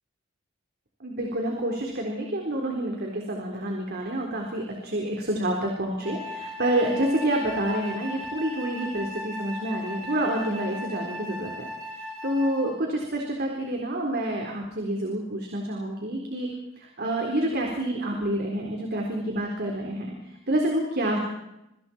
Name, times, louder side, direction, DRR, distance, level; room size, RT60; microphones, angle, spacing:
voice 1, 1.0-11.7 12.2-16.5 16.8-20.2 20.5-21.2, right 1 dB, 50° right, 1 dB, 4.0 m, -28 dB
Wind instrument woodwind instrument, 6.0-12.8, left 1 dB, 85° right, 8.0 m, -37 dB
28.0 x 25.0 x 4.5 m, 0.87 s
head